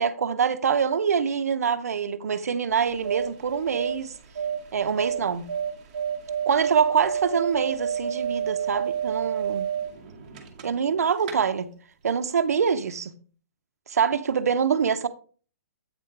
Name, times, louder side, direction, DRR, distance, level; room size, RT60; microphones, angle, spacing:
voice 1, 0.0-4.1 4.7-5.5 6.5-9.7 10.6-11.7 12.0-13.1 13.9-15.1, right 6 dB, 80° right, 0.6 m, -25 dB
sound 1, 2.7-10.9 11.2-11.3, right 8 dB, 30° right, 1.0 m, -30 dB
8.1 x 4.5 x 3.7 m
hypercardioid pair, 180°, 8 cm